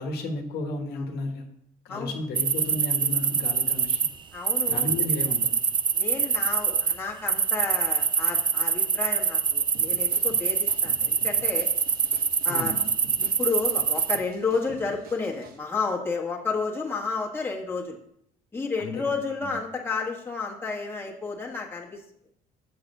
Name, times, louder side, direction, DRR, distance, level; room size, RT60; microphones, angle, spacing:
voice 1, 0.0-1.5 1.8-4.1 4.7-5.6 12.5-12.9 18.8-19.1 19.4-19.6, left 2 dB, 75° left, 4 dB, 1.1 m, -33 dB
sound 1, 2.4-4.1 4.5-6.9 7.3-14.2, right 6 dB, 30° right, 0.4 m, -24 dB
voice 2, 4.3-4.9 5.9-11.7 12.4-12.8 13.2-18.0 18.5-22.0, left 4 dB, 15° left, -2 dB, 1.4 m, -31 dB
sound 2, 9.7-15.6, right 5 dB, 65° right, 1.1 m, -48 dB
7.4 x 4.0 x 6.5 m, 0.75 s
cardioid pair, 110°, 17 cm